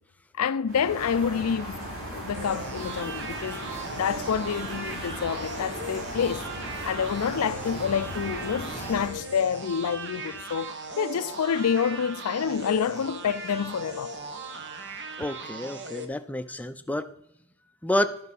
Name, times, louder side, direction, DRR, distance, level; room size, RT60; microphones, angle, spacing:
voice 1, 0.4-6.5 6.8-14.1, left 7 dB, 80° left, 0.4 m, -28 dB
sound 1, 0.7-9.1, right 1 dB, 80° right, 4.8 m, -37 dB
sound 2, 2.3-16.0, right 2 dB, 55° right, 1.1 m, -38 dB
voice 2, 15.2-17.1 17.8-18.2, left 1 dB, 5° left, 0.5 m, -29 dB
12.0 x 5.8 x 6.2 m
head